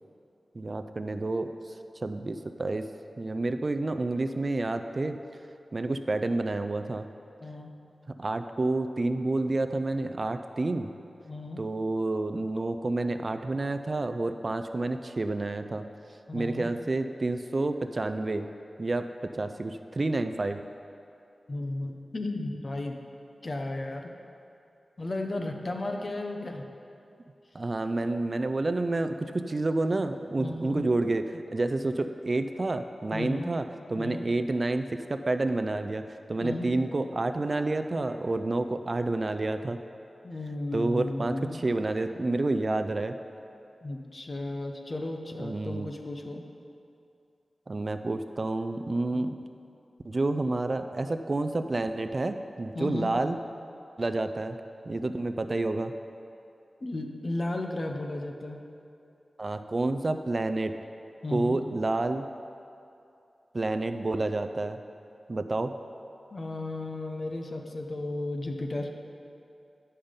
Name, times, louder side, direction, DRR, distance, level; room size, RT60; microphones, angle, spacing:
voice 1, 0.5-2.9 3.2-5.2 5.7-7.1 8.2-10.9 11.6-15.8 16.3-18.5 18.8-20.6 27.5-39.8 40.7-43.2 45.4-45.9 47.7-49.4 50.0-53.4 54.0-54.6 54.9-55.9 59.4-60.7 61.3-62.3 63.5-64.8 65.3-65.7, right 2 dB, 40° right, 8 dB, 0.3 m, -29 dB
voice 2, 7.4-7.7 11.2-11.6 16.3-16.7 21.5-23.0 23.4-24.1 25.0-26.7 30.4-30.8 33.1-33.6 34.0-34.2 36.4-36.8 40.2-41.6 43.8-46.4 49.1-49.4 52.7-53.2 56.8-58.6 61.2-61.6 66.3-68.9, left 2 dB, 40° left, 3 dB, 0.8 m, -34 dB
10.5 x 5.5 x 5.2 m, 2.6 s
wide cardioid pair, 90°, 0 cm